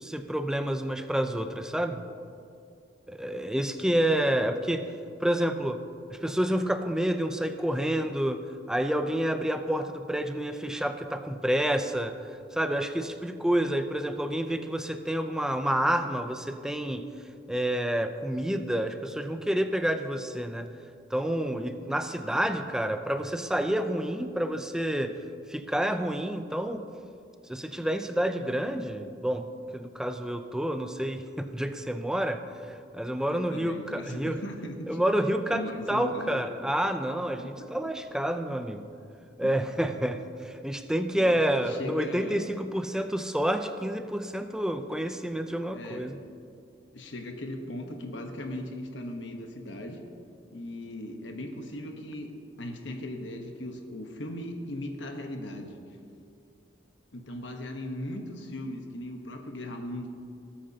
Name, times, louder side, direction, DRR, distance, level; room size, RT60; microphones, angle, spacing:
voice 1, 0.0-2.0 3.1-4.9 5.2-5.8 6.1-12.2 12.5-17.1 17.5-20.7 21.1-25.2 25.5-26.9 27.5-32.4 32.9-34.4 34.9-38.8 39.4-46.2, right 1 dB, 5° right, 8 dB, 0.4 m, -29 dB
voice 2, 33.3-35.0 35.5-36.5 37.4-37.7 39.4-39.5 41.2-42.5 45.7-46.0 46.9-50.0 50.5-52.3 52.6-55.8 57.1-60.1, left 1 dB, 80° left, 4 dB, 1.1 m, -38 dB
18.5 x 8.7 x 2.8 m, 2.4 s
head